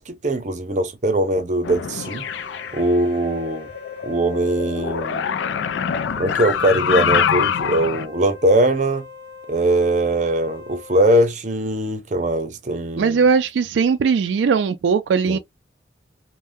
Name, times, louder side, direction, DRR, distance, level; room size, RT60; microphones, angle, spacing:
voice 1, 0.0-2.3 2.7-3.7 4.0-5.3 6.2-9.0 9.5-13.2 15.3-15.4, right 1 dB, 40° right, 0.6 m, -21 dB
sound 1, 1.6-2.9 3.2-8.1, left 8 dB, 80° left, 0.4 m, -24 dB
Wind instrument woodwind instrument, 1.9-11.2, left 5 dB, 35° left, 1.0 m, -42 dB
voice 2, 13.0-15.4, right 5 dB, 80° right, 0.3 m, -19 dB
3.5 x 2.2 x 2.5 m
head